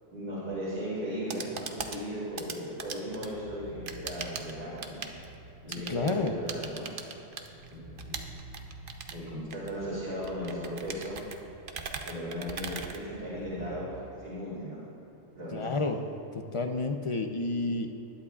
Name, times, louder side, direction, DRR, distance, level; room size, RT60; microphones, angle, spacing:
voice 1, 0.1-5.0 5.6-6.9 7.7-8.4 9.1-11.2 12.0-14.8 15.3-15.8, equal, 70° right, -11 dB, 3.7 m, -37 dB
sound 1, 1.0-13.7, right 5 dB, 50° right, 0.9 m, -41 dB
sound 2, 2.9-13.7, right 2 dB, 30° right, 1.7 m, -51 dB
voice 2, 5.9-6.3 15.5-16.0 16.3-17.9, left 3 dB, 35° left, 5 dB, 0.5 m, -30 dB
20.5 x 11.0 x 2.4 m, 2.7 s
omnidirectional pair, 1.2 m